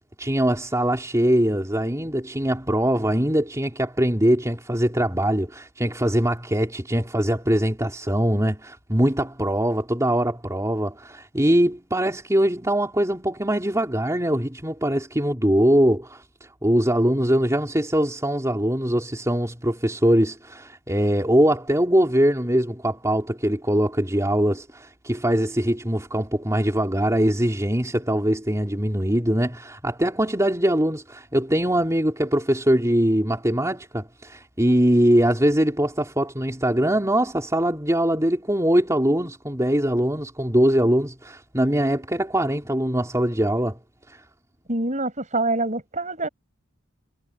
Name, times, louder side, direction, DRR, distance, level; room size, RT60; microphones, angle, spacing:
voice 1, 0.2-16.2 16.6-43.8 44.1-44.2, right 1 dB, 15° right, 3.7 m, -22 dB
voice 2, 44.7-46.3, right 2 dB, 35° right, 7.0 m, -25 dB
head